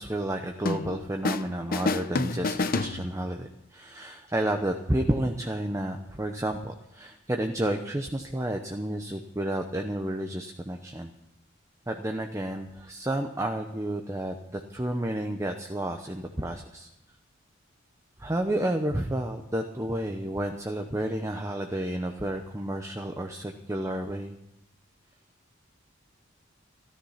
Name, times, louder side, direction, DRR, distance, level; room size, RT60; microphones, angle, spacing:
voice 1, 0.0-11.1 11.9-16.9 18.2-24.4, right 1 dB, 15° right, 4 dB, 0.8 m, -31 dB
sound 1, 0.7-1.5 1.7-3.5, left 3 dB, 45° left, 0.7 m, -29 dB
14.0 x 13.0 x 5.7 m, 0.89 s
head